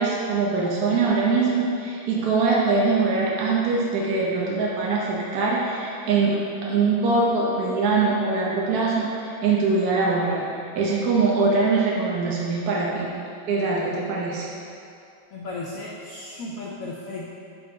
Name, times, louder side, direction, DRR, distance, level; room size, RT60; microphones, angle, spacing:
voice 1, 0.0-6.3 6.6-10.5 10.8-13.1 13.5-14.5, right 4 dB, 60° right, -4 dB, 1.1 m, -22 dB
voice 2, 15.3-17.3, left 2 dB, 90° left, -3 dB, 0.7 m, -35 dB
5.2 x 4.7 x 4.9 m, 2.6 s
omnidirectional pair, 2.2 m